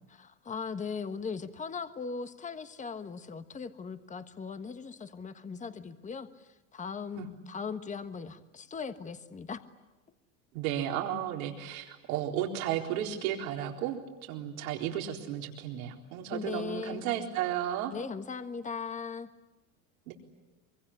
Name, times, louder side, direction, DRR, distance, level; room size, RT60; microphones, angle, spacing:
voice 1, 0.1-9.6 16.3-17.0 17.9-19.3, left 5 dB, 15° left, 10 dB, 1.4 m, -39 dB
voice 2, 10.5-14.0 14.3-17.9 20.1-20.2, right 11 dB, 75° right, 2 dB, 4.1 m, -33 dB
24.0 x 23.0 x 10.0 m, 1.1 s
supercardioid pair, 115°, 42 cm